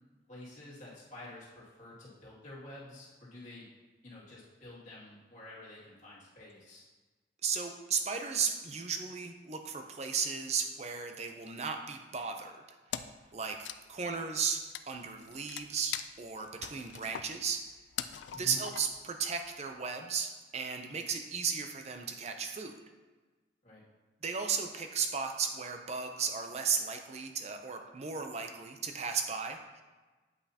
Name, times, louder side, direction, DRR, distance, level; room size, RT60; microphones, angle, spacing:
voice 1, 0.3-3.7 4.0-6.8 18.3-18.6 23.6-23.8, left 1 dB, 40° left, -8 dB, 2.3 m, -49 dB
voice 2, 7.4-12.6 13.0-14.6 14.9-17.6 18.3-22.7 24.2-29.8, right 6 dB, 35° right, 5 dB, 0.6 m, -35 dB
Wood, 12.9-13.3 13.5-19.1, left 10 dB, 70° left, 0.3 m, -42 dB
8.3 x 5.5 x 2.8 m, 1.3 s
head